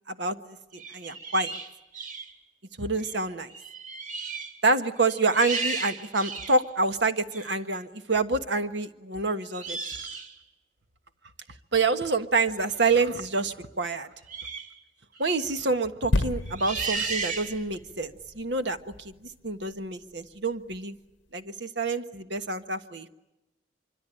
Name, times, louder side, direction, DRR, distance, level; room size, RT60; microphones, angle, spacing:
voice 1, 0.1-1.5 2.8-3.5 4.6-9.8 11.7-14.1 15.2-19.1 19.4-20.9 21.3-23.1, right 3 dB, 75° right, 9 dB, 1.4 m, -27 dB
sound 1, 0.7-2.3 3.0-3.2 3.5-4.6 5.0-6.6 7.3-7.5 9.5-10.4 14.3-14.7 15.2-15.4 16.5-17.8, right 4 dB, 45° right, 2.4 m, -34 dB
sound 2, 16.1-19.7 20.3-20.4, left 2 dB, 90° left, 0.9 m, -32 dB
25.0 x 24.5 x 9.1 m, 0.92 s
head